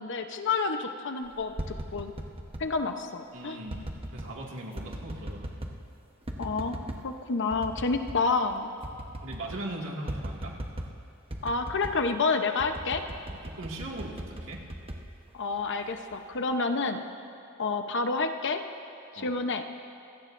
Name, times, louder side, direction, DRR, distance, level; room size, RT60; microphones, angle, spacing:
voice 1, 0.0-1.5 1.9-2.1 2.6-3.6 6.4-8.7 11.4-13.0 15.3-17.0 17.6-18.6 19.1-19.6, left 4 dB, 55° left, 6 dB, 0.9 m, -29 dB
sound 1, 1.3-2.7 3.7-4.3 4.8-5.8 6.3-7.0 7.5-8.2 8.5-8.6 8.8-9.7 10.1-11.0 11.3-12.0 12.6-15.7 16.1-16.5, right 1 dB, 25° right, 1.1 m, -38 dB
voice 2, 3.3-3.8 4.1-5.5 9.2-10.6 13.3-14.6 19.1-19.3, right 1 dB, 65° right, -2 dB, 2.2 m, -39 dB
27.0 x 16.5 x 2.6 m, 2.7 s
head